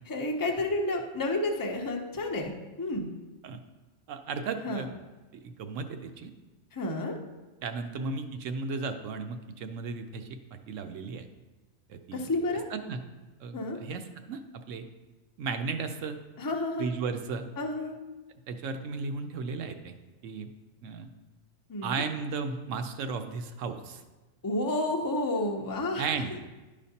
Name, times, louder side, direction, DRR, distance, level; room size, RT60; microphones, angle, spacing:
voice 1, 0.1-3.1 4.6-4.8 6.7-7.2 12.1-12.6 13.5-13.8 16.4-16.9 17.6-17.9 21.7-22.0 24.4-26.2, left 2 dB, 25° left, 2 dB, 0.4 m, -30 dB
voice 2, 4.1-4.9 5.3-6.3 7.6-10.4 10.7-11.2 11.9-12.2 12.7-13.0 13.4-14.0 14.3-14.4 14.7-14.8 15.4-16.2 16.8-17.5 18.5-19.9 20.2-20.5 20.8-21.1 21.8-24.0 26.0-26.3, right 4 dB, 70° right, 7 dB, 0.9 m, -34 dB
11.0 x 5.1 x 2.8 m, 1.2 s
omnidirectional pair, 1.4 m